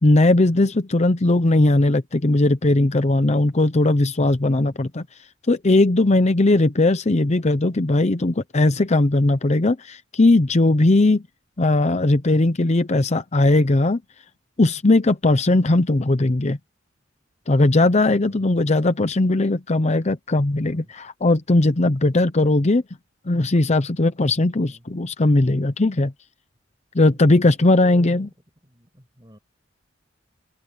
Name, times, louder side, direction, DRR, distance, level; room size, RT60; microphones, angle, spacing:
voice 1, 0.0-5.1 5.5-11.2 11.6-14.0 14.6-16.6 17.5-22.8 23.3-26.1 26.9-28.3, left 2 dB, 35° left, 0.7 m, -18 dB
voice 2, 4.5-4.8 18.1-18.8 20.6-20.9 24.5-24.8 27.1-27.5 27.8-28.3 28.6-29.4, equal, 20° right, 7.1 m, -49 dB
open air
head